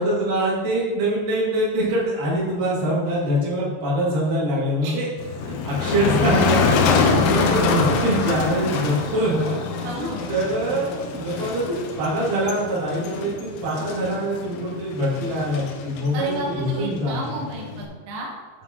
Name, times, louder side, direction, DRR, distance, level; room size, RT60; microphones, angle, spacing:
voice 1, 0.0-5.1 5.4-17.2, right 1 dB, 50° right, -7 dB, 3.6 m, -24 dB
Motor vehicle (road), 5.2-17.8, left 4 dB, 80° left, 2.3 m, -25 dB
voice 2, 9.8-10.3 16.1-18.3, right 1 dB, 85° right, -1 dB, 3.8 m, -32 dB
9.4 x 8.1 x 3.0 m, 1.4 s
omnidirectional pair, 5.6 m